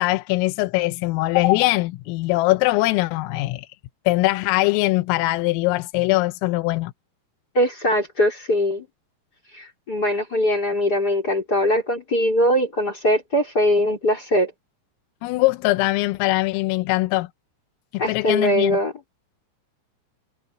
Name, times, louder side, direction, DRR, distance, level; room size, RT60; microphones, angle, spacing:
voice 1, 0.0-3.7 4.1-6.9 15.2-17.3 17.9-18.8, left 20 dB, 90° left, 3.5 m, -21 dB
voice 2, 7.5-8.9 9.5-14.5 18.0-18.9, equal, 20° left, 3.8 m, -21 dB
omnidirectional pair, 5.8 m